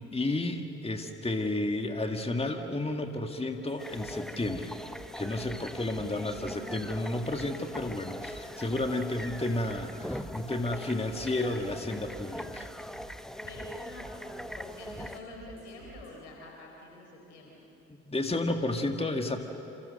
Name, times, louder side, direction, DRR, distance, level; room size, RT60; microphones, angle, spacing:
voice 1, 0.1-4.7 5.2-12.7 17.9-19.4, left 2 dB, 15° left, 5 dB, 2.2 m, -32 dB
sound 1, 3.7-16.1, right 4 dB, 70° right, 6.3 m, -52 dB
sound 2, 3.8-15.2, equal, ahead, 1.2 m, -42 dB
voice 2, 6.0-6.9 13.5-14.3 14.5-17.6, left 2 dB, 85° left, 0 dB, 4.4 m, -47 dB
28.5 x 28.0 x 6.7 m, 2.9 s
figure-of-eight pair, 40°, 35 cm